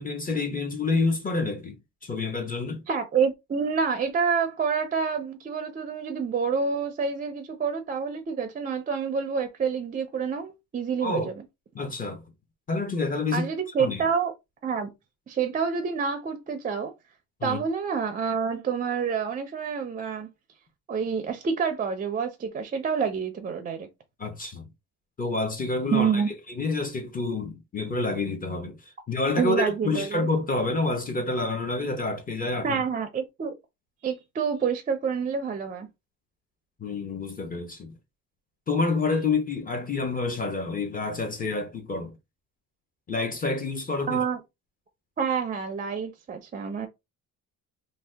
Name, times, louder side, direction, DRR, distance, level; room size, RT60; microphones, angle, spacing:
voice 1, 0.0-2.8 11.0-11.3 11.7-12.2 12.7-13.5 13.8-14.0 17.4-17.6 24.2-24.7 25.2-26.2 26.6-28.8 29.1-32.8 36.8-37.9 38.7-42.2 43.1-44.2, left 3 dB, 25° left, 0.6 m, -28 dB
voice 2, 2.9-11.3 13.3-14.3 14.6-14.9 15.3-16.9 17.4-20.3 20.9-23.9 25.9-26.3 29.4-30.3 32.6-33.5 34.0-35.9 44.1-44.4 45.2-46.9, right 6 dB, 25° right, 0.4 m, -28 dB
2.7 x 2.1 x 3.3 m
cardioid pair, 125°, 36 cm